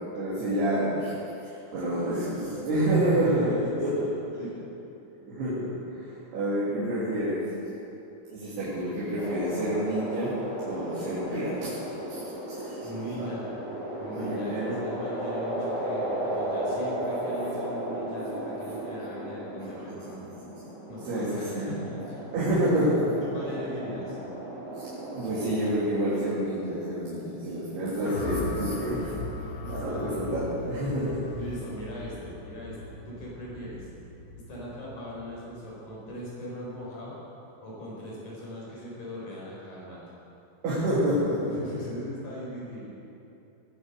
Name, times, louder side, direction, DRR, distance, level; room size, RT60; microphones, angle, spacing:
voice 1, 0.1-1.1 1.4-4.0 4.3-4.4 5.3-5.9 6.3-7.4 8.3-10.3 10.6-11.8 12.1-12.2 12.6-12.9 13.2-13.3 14.1-14.8 21.1-21.7 22.3-23.0 25.1-31.3 40.6-41.6, right 1 dB, 75° right, -10 dB, 5.1 m, -28 dB
voice 2, 3.3-4.0 4.3-4.6 12.8-13.5 14.0-20.2 20.9-22.3 22.5-22.8 23.2-24.2 29.6-30.2 31.4-33.9 34.5-37.2 37.6-40.0 41.5-42.9, equal, 50° left, -6 dB, 6.3 m, -39 dB
sound 1, 9.2-25.7, right 1 dB, 25° left, 4.0 m, -35 dB
sound 2, 28.0-36.3, left 3 dB, 80° left, 3.7 m, -39 dB
20.0 x 10.0 x 6.7 m, 2.8 s
omnidirectional pair, 4.6 m